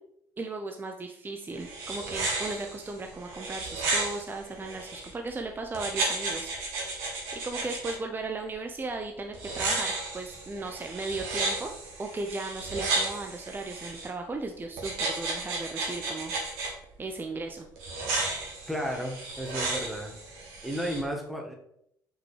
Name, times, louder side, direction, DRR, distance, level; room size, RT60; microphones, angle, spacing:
voice 1, 0.4-6.5 7.3-11.7 12.0-16.3 17.0-17.7, right 3 dB, 20° right, 4 dB, 0.6 m, -36 dB
sound 1, 1.5-5.1 5.7-7.9 9.3-14.1 14.8-16.7 17.8-21.0, right 3 dB, 70° right, 1.8 m, -33 dB
voice 2, 18.7-20.2 20.6-21.5, equal, ahead, 1 dB, 1.5 m, -33 dB
6.0 x 5.5 x 3.3 m, 0.76 s
figure-of-eight pair, 55°, 10 cm